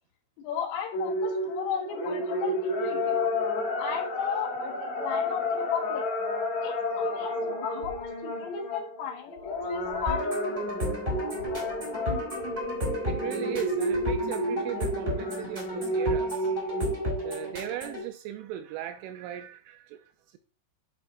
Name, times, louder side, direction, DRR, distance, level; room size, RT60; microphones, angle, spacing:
voice 1, 0.4-3.3 3.8-6.1 6.6-10.7, left 8 dB, 80° left, 4.1 m, -35 dB
sound 1, 0.9-17.6, left 1 dB, 55° left, 2.1 m, -31 dB
sound 2, 10.1-18.1, equal, 15° right, 2.9 m, -34 dB
voice 2, 13.1-16.5 17.2-20.4, right 12 dB, 85° right, 2.8 m, -38 dB
11.0 x 7.0 x 2.5 m
omnidirectional pair, 5.9 m